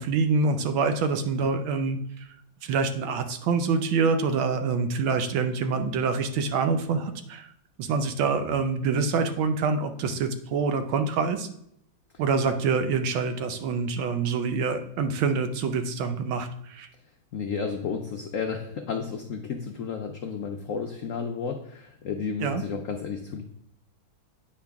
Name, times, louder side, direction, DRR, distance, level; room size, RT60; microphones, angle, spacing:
voice 1, 0.0-2.3 2.6-7.5 7.8-11.5 12.2-16.9 22.4-22.6, right 4 dB, 85° right, 8 dB, 1.6 m, -26 dB
voice 2, 17.3-23.4, left 6 dB, 85° left, 4 dB, 0.7 m, -32 dB
8.6 x 5.0 x 3.5 m, 0.74 s
omnidirectional pair, 2.1 m